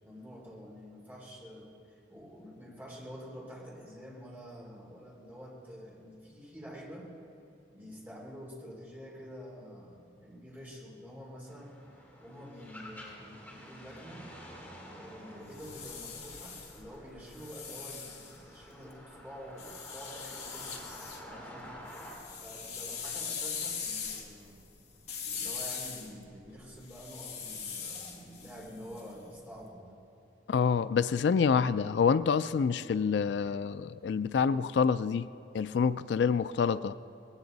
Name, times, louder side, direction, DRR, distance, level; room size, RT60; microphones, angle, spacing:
voice 1, 0.0-7.1 7.7-11.8 12.2-14.3 14.9-20.8 21.2-21.7 22.3-24.6 25.3-30.0, equal, 10° right, -4 dB, 3.5 m, -48 dB
sound 1, 11.4-22.1, equal, 10° left, 3.9 m, -50 dB
sound 2, 15.4-18.9 19.6-21.2 21.6-29.5, left 6 dB, 40° left, 2.0 m, -41 dB
voice 2, 30.5-35.3 35.5-36.9, left 6 dB, 75° left, 14 dB, 0.3 m, -27 dB
20.5 x 16.5 x 4.0 m, 2.8 s
head